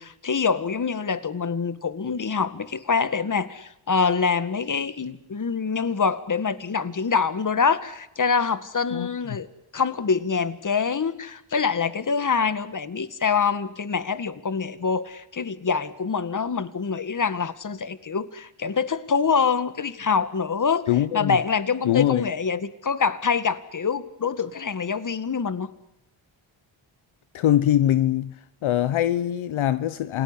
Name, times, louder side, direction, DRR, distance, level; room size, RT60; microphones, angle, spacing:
voice 1, 0.0-9.5 9.7-25.7, left 5 dB, 40° left, 2.0 m, -25 dB
voice 2, 20.9-21.4 21.8-22.3 27.3-28.3 28.6-30.2, left 12 dB, 75° left, 1.1 m, -22 dB
28.0 x 18.5 x 10.0 m
supercardioid pair, 60°, 49 cm